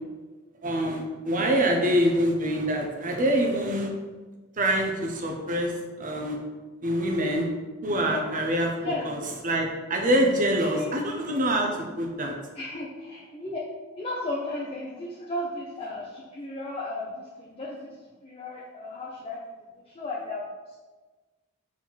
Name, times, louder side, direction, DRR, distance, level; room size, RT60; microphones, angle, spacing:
voice 1, 0.6-3.9 4.6-6.4 6.8-7.5 7.8-9.2 9.4-11.7 12.0-12.3, right 1 dB, 40° right, 2 dB, 0.9 m, -25 dB
voice 2, 1.3-1.8 7.9-8.3 8.8-9.3 10.7-11.0 12.5-13.6 13.9-20.8, left 2 dB, 25° left, -4 dB, 0.7 m, -35 dB
4.4 x 4.3 x 5.8 m, 1.3 s
head